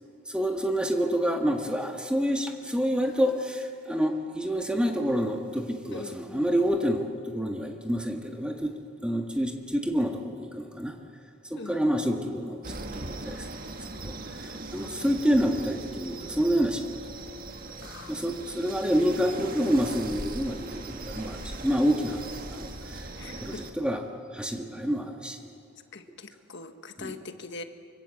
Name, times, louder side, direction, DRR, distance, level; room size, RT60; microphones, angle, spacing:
voice 1, 0.3-8.8 9.0-11.0 11.5-13.5 14.0-17.0 18.1-23.1 23.4-24.0 24.3-25.4 27.0-27.2, equal, 5° right, 3 dB, 1.8 m, -28 dB
voice 2, 5.8-6.5 11.5-11.9 14.8-15.2 17.8-18.4 23.2-23.7 25.9-27.6, left 3 dB, 50° left, 7 dB, 1.4 m, -43 dB
sound 1, 12.6-23.7, right 2 dB, 40° right, 1.7 m, -40 dB
25.5 x 24.0 x 7.8 m, 2.5 s
head